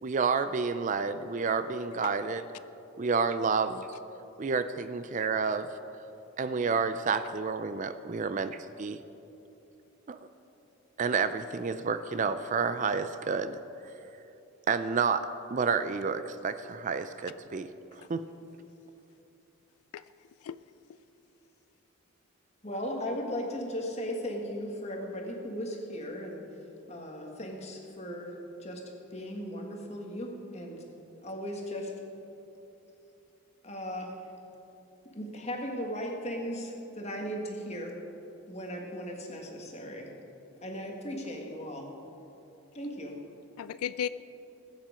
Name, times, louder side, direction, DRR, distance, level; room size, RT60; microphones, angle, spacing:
voice 1, 0.0-2.4 3.0-3.9 4.4-5.7 6.4-9.0 10.1-10.2 11.0-13.6 14.7-17.7 18.1-18.3, right 5 dB, 35° right, 11 dB, 0.4 m, -29 dB
voice 2, 19.9-20.6 43.6-44.1, left 9 dB, 85° left, 15 dB, 0.3 m, -36 dB
voice 3, 22.6-26.4 26.9-28.3 28.6-28.8 29.1-30.8 31.2-31.9 33.6-34.1 35.1-37.9 38.5-40.1 40.6-41.9 42.7-43.2, equal, 30° left, 1 dB, 1.6 m, -37 dB
20.5 x 7.4 x 5.0 m, 3.0 s
head